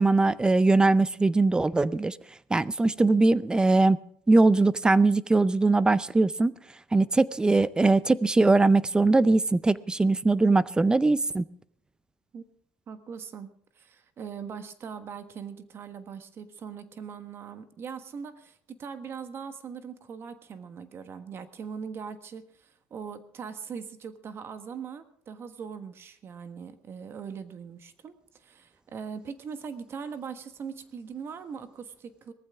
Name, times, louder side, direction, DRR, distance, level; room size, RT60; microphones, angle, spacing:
voice 1, 0.0-2.2 2.5-4.0 4.3-6.5 6.9-11.4, right 3 dB, 15° right, 18 dB, 0.5 m, -21 dB
voice 2, 12.9-32.3, right 6 dB, 40° right, 10 dB, 1.4 m, -41 dB
19.0 x 14.5 x 3.6 m, 0.67 s
cardioid pair, 115°, 6 cm